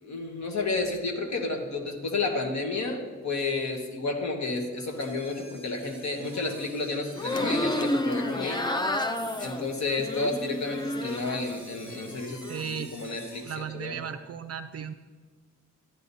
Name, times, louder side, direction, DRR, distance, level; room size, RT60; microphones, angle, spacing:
voice 1, 0.0-8.6 9.4-14.0, left 3 dB, 60° left, 3 dB, 1.5 m, -31 dB
sound 1, 4.8-13.6, right 1 dB, 5° right, 2.4 m, -51 dB
sound 2, 7.1-11.6 11.9-12.7, left 1 dB, 15° left, 0.4 m, -30 dB
voice 2, 12.2-12.9 13.5-14.9, right 8 dB, 55° right, 10 dB, 0.4 m, -36 dB
14.0 x 9.7 x 2.7 m, 1.4 s
wide cardioid pair, 145°, 31 cm